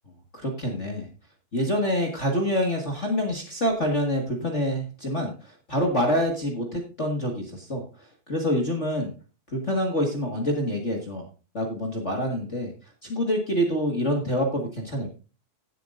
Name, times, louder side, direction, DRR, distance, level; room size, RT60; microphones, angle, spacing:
voice 1, 0.3-1.1 1.5-7.8 8.3-9.1 9.5-11.2 11.5-12.7 13.0-15.1, equal, 35° left, 2 dB, 1.1 m, -26 dB
16.5 x 7.9 x 2.6 m, 0.34 s
omnidirectional pair, 4.2 m